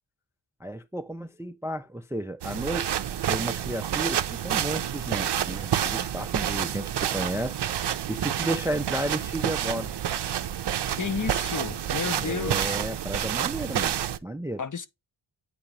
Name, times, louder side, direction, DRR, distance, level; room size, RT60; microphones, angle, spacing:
voice 1, 0.6-2.9 3.3-7.6 8.1-9.9 12.2-14.6, right 1 dB, 5° right, 0.3 m, -32 dB
sound 1, 2.4-14.2, right 10 dB, 70° right, 0.6 m, -29 dB
voice 2, 11.0-12.8 14.6-14.9, left 6 dB, 45° left, 0.7 m, -32 dB
8.5 x 2.9 x 5.0 m
wide cardioid pair, 105°, 44 cm